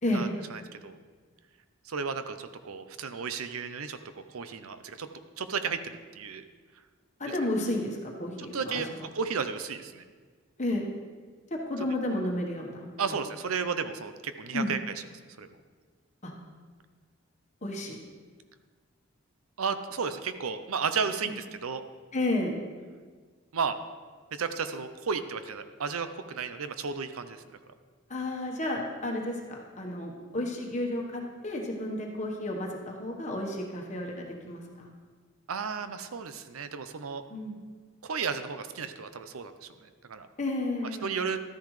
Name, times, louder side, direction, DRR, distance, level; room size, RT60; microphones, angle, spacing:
voice 1, 0.1-1.0 1.8-5.1 5.4-6.4 8.5-8.9 9.1-10.0 13.0-15.1 15.4-15.5 19.6-21.8 23.5-23.8 24.3-27.4 35.5-37.2 38.0-40.3 41.0-41.4, right 5 dB, 90° right, 10 dB, 0.6 m, -33 dB
voice 2, 7.2-9.0 10.6-10.8 11.5-13.1 14.5-14.7 16.2-16.3 17.6-17.9 21.2-21.3 22.1-22.6 28.1-34.9 37.3-37.6 40.4-41.2, left 1 dB, 35° left, 0 dB, 1.2 m, -32 dB
13.0 x 10.5 x 3.2 m, 1.5 s
head